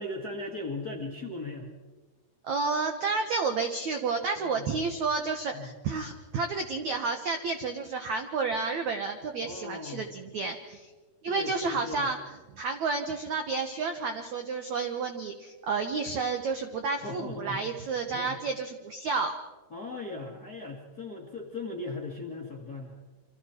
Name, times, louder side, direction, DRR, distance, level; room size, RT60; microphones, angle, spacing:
voice 1, 0.0-1.7 4.4-4.7 5.5-5.7 9.4-10.0 11.3-12.1 17.0-17.6 18.1-18.4 19.7-23.0, left 2 dB, 40° left, 1 dB, 1.4 m, -38 dB
voice 2, 2.4-10.9 11.2-19.3, right 4 dB, 75° right, 6 dB, 1.7 m, -31 dB
28.5 x 25.5 x 4.5 m, 1.3 s
omnidirectional pair, 5.1 m